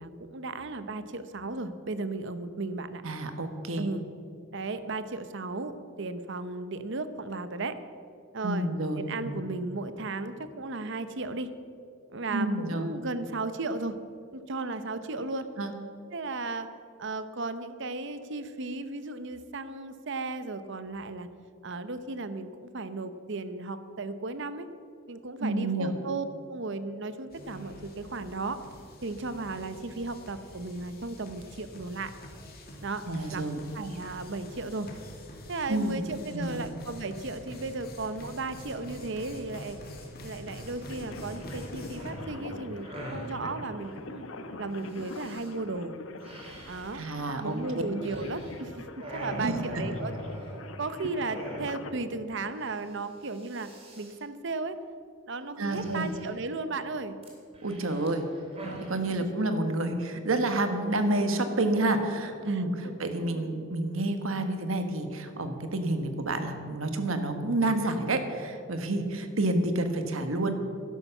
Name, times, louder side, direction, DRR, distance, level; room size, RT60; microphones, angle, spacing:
voice 1, 0.0-3.0 3.8-4.0 4.5-7.8 8.3-8.7 9.0-11.5 12.1-14.0 14.3-15.5 16.1-16.7 17.0-21.3 21.6-24.7 25.1-28.6 29.0-32.1 32.8-33.0 33.3-33.4 33.7-34.9 35.5-39.8 40.2-44.2 44.6-46.0 46.7-47.0 47.4-50.1 50.8-53.7 54.0-54.8 55.3-57.2 62.5-63.5, right 3 dB, 60° right, 12 dB, 0.8 m, -35 dB
voice 2, 3.0-3.9 8.4-9.4 12.3-12.9 15.6-15.7 25.4-25.9 33.1-33.6 35.7-36.0 36.3-36.6 46.9-47.8 49.4-49.8 55.6-56.1 57.6-58.2 58.9-70.5, right 2 dB, 80° right, 7 dB, 1.4 m, -29 dB
sound 1, 27.3-42.1, left 1 dB, 50° left, 2.2 m, -46 dB
sound 2, 40.6-40.9 41.2-43.4 44.9-45.5 46.2-48.6 48.9-50.9 51.3-52.0 52.3-52.4 52.7-53.0 53.2-54.2 55.6-56.5 57.2-58.9, equal, 30° right, 3.0 m, -43 dB
sound 3, 40.8-51.9, left 2 dB, 80° left, 1.0 m, -44 dB
12.0 x 11.0 x 7.1 m, 2.4 s
head